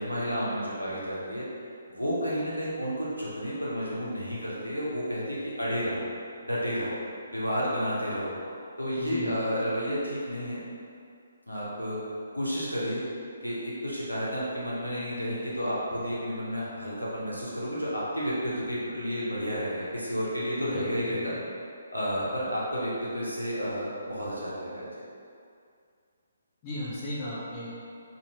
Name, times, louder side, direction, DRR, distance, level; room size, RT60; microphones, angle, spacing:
voice 1, 0.0-1.5 1.9-6.1 6.4-7.0 7.3-8.3 8.8-10.6 11.5-12.0 12.3-13.0 13.4-21.3 21.9-24.9, equal, 85° left, -7 dB, 0.8 m, -31 dB
voice 2, 9.0-9.4 20.5-21.2 26.6-28.0, left 2 dB, 25° left, -8 dB, 0.6 m, -36 dB
2.6 x 2.5 x 2.9 m, 2.3 s
figure-of-eight pair, 135°, 0 cm